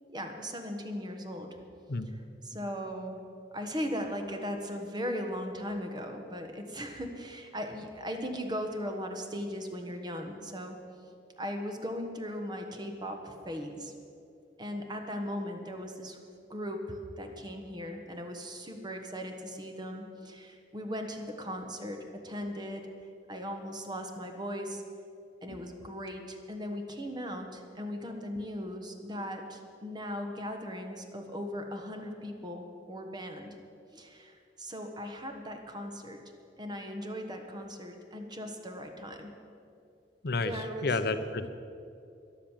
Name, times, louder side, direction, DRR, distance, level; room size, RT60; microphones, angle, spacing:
voice 1, 0.1-1.5 2.1-3.2 3.5-10.8 11.0-13.9 14.6-16.2 16.5-22.9 23.3-24.8 25.4-33.6 33.9-36.2 36.6-39.3 40.4-41.0, equal, 25° right, 4 dB, 1.3 m, -38 dB
voice 2, 40.8-41.5, left 3 dB, 60° left, 10 dB, 0.8 m, -30 dB
13.0 x 11.5 x 7.3 m, 2.5 s
head